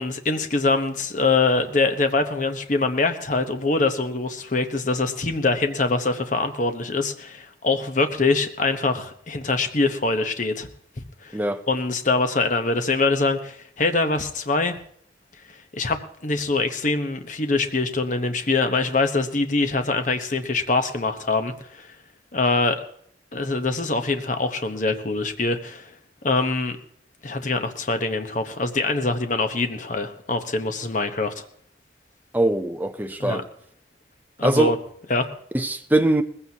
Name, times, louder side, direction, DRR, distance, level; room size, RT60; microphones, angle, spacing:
voice 1, 0.0-10.7 11.2-11.4 11.7-14.8 15.7-21.9 22.3-22.8 23.3-25.9 26.2-26.8 27.2-31.4 33.2-33.4 34.4-34.8 35.1-35.3, left 3 dB, 45° left, 1.0 m, -24 dB
voice 2, 32.3-33.4 34.4-34.7 35.5-36.2, right 1 dB, 10° right, 0.6 m, -21 dB
19.5 x 15.5 x 2.9 m
head